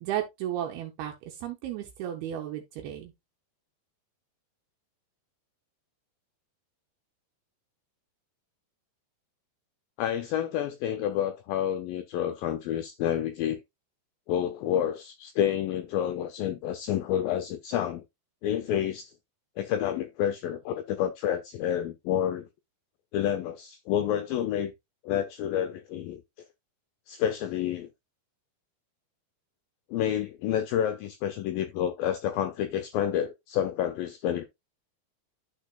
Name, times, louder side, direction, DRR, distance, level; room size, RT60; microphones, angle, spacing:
voice 1, 0.0-3.1, right 11 dB, 75° right, 2.7 m, -34 dB
voice 2, 10.0-13.6 14.3-18.0 18.4-19.1 19.6-22.5 23.1-24.7 25.0-26.2 27.1-27.9 29.9-34.4, left 10 dB, 85° left, 2.0 m, -29 dB
12.0 x 4.5 x 2.4 m
omnidirectional pair, 4.7 m